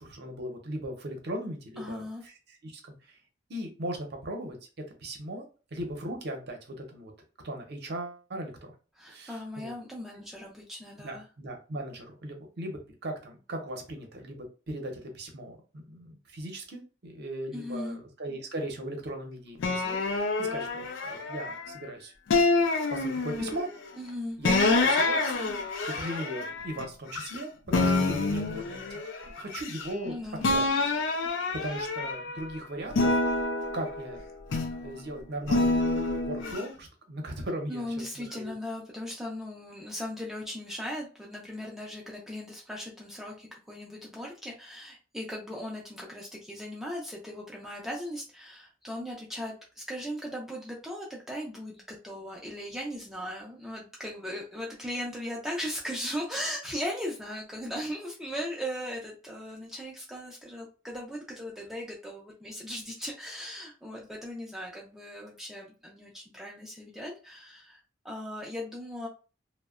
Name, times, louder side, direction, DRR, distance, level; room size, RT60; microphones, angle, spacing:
voice 1, 0.0-3.2 3.5-5.4 5.7-7.1 7.4-8.7 9.1-9.7 10.1-10.2 11.0-22.1 22.9-23.7 24.4-25.5 25.9-28.8 29.2-30.1 30.5-30.9 31.6-33.2 33.7-34.2 34.8-35.9 36.2-38.5, right 1 dB, 60° right, 3 dB, 0.7 m, -38 dB
voice 2, 1.8-2.2 9.0-11.2 17.5-18.0 24.0-24.4 30.0-30.4 31.6-31.7 37.7-69.1, equal, ahead, -3 dB, 0.4 m, -38 dB
sound 1, 19.6-21.8 22.3-23.7 24.4-27.4 27.7-30.1 30.4-32.4 32.9-34.9 35.5-36.6, left 3 dB, 70° left, 0.4 m, -27 dB
2.7 x 2.1 x 2.3 m, 0.34 s
head